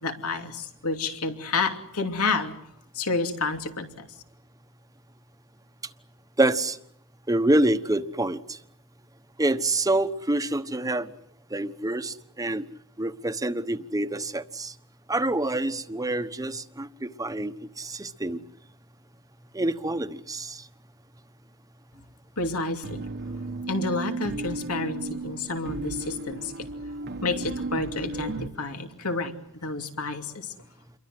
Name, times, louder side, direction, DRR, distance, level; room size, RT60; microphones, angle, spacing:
voice 1, 0.0-2.5 2.9-4.1 22.4-23.0 23.7-26.7 27.2-29.3 29.6-30.5, left 3 dB, 85° left, 6 dB, 2.7 m, -29 dB
voice 2, 6.4-6.8 7.3-8.6 9.4-11.1 11.5-12.6 13.0-14.7 15.1-18.4 19.5-20.7, right 1 dB, 15° right, 10 dB, 1.1 m, -26 dB
sound 1, 22.8-28.5, right 2 dB, 50° right, 1.2 m, -34 dB
28.5 x 23.0 x 7.9 m, 0.72 s
head